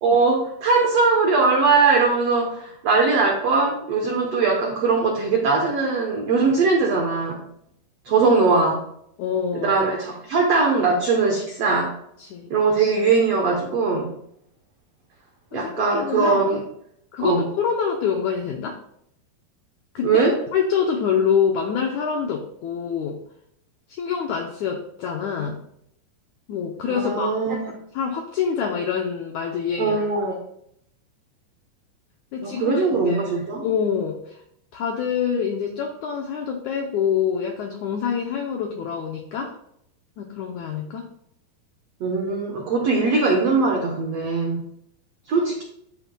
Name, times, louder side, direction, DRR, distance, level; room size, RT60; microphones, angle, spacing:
voice 1, 0.0-7.4 8.0-8.8 9.5-11.9 12.5-14.1 15.5-16.6 17.2-17.4 20.0-20.4 26.9-27.7 29.8-30.4 32.4-33.7 42.0-44.6 45.3-45.6, right 4 dB, 85° right, 1 dB, 1.4 m, -20 dB
voice 2, 9.2-9.8 12.2-12.5 15.5-16.5 17.1-18.8 19.9-20.2 20.5-23.2 23.9-25.6 26.5-27.3 27.9-30.0 32.3-33.4 33.6-34.4 34.7-39.5 40.2-41.1, left 7 dB, 90° left, 2 dB, 1.7 m, -26 dB
11.0 x 8.3 x 2.3 m, 0.72 s
omnidirectional pair, 4.4 m